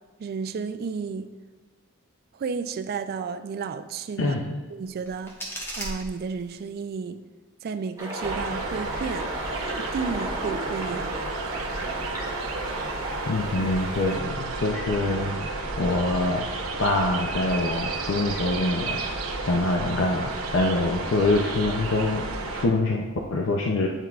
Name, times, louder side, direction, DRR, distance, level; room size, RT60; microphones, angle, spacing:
voice 1, 0.2-1.3 2.3-4.4 4.7-5.3 5.8-7.2 7.6-9.3 9.6-11.2, right 5 dB, 45° right, 10 dB, 0.3 m, -32 dB
voice 2, 4.2-4.6 13.3-15.4 15.8-16.5 16.8-19.0 19.4-22.2 22.5-23.9, left 2 dB, 65° left, 0 dB, 0.5 m, -25 dB
sound 1, 4.8-6.8, right 1 dB, 10° left, 1.1 m, -37 dB
sound 2, 8.0-14.2, right 1 dB, 15° right, 1.2 m, -35 dB
sound 3, 8.2-22.7, right 3 dB, 85° right, 0.9 m, -32 dB
8.9 x 4.5 x 2.4 m, 1.3 s
head